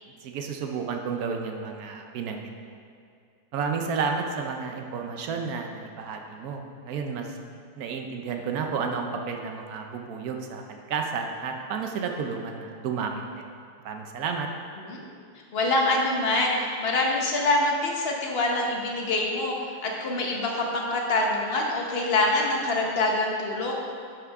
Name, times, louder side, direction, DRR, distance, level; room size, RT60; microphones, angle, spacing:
voice 1, 0.2-2.8 3.5-7.4 7.8-13.4 13.8-14.5, right 5 dB, 80° right, 3 dB, 0.8 m, -31 dB
voice 2, 15.5-19.6 19.8-23.7, left 2 dB, 45° left, -1 dB, 0.8 m, -25 dB
10.5 x 7.3 x 3.5 m, 2.3 s
omnidirectional pair, 2.3 m